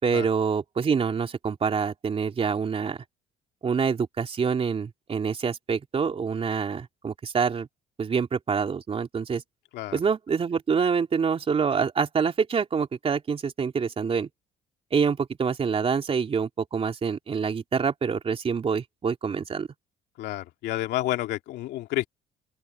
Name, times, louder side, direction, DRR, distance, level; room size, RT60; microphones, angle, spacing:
voice 1, 0.0-3.0 3.6-7.7 8.0-9.4 9.9-14.3 14.9-19.7, right 6 dB, 35° right, 3.4 m, -26 dB
voice 2, 20.2-22.1, left 15 dB, 80° left, 2.4 m, -30 dB
open air
cardioid pair, 110°, 17 cm